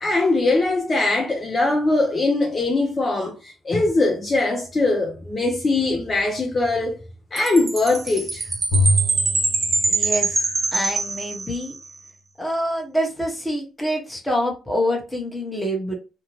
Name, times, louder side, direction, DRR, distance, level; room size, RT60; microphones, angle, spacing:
voice 1, 0.0-7.0 7.3-8.5, left 2 dB, 30° left, 0.5 m, -21 dB
Chime, 7.4-11.9, right 3 dB, 35° right, 0.5 m, -24 dB
Bowed string instrument, 8.7-11.1, left 1 dB, 70° left, 1.1 m, -25 dB
voice 2, 9.8-10.4 10.7-11.7 12.4-15.9, equal, 5° left, 1.0 m, -26 dB
2.7 x 2.1 x 3.0 m
cardioid pair, 90°, 0 cm